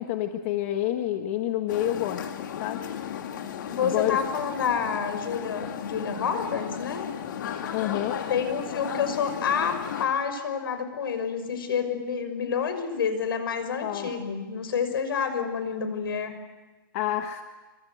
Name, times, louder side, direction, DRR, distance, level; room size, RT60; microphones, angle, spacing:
voice 1, 0.0-2.2 2.6-2.8 3.8-4.2 7.7-8.2 13.8-14.1 16.9-17.4, left 12 dB, 35° left, 6 dB, 1.4 m, -28 dB
sound 1, 1.7-10.1, left 9 dB, 60° left, 3.0 m, -35 dB
voice 2, 3.6-7.1 8.3-16.3, left 6 dB, 80° left, 9 dB, 6.0 m, -28 dB
26.5 x 25.0 x 8.1 m, 1.2 s
hypercardioid pair, 165°, 12 cm